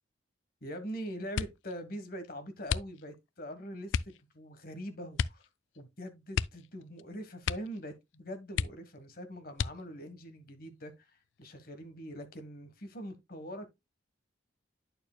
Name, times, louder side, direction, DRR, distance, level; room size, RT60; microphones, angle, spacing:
voice 1, 0.6-5.4 5.7-13.7, equal, 50° left, 1.3 m, -43 dB
sound 1, 1.3-1.7 2.6-3.3 3.9-4.2 5.1-5.5 5.7-5.8 6.3-7.1 7.4-7.8 8.1-8.2 8.5-9.1 9.5-10.1 10.8-11.4 11.8-12.2, left 7 dB, 80° left, 0.3 m, -34 dB
8.8 x 6.6 x 2.2 m
head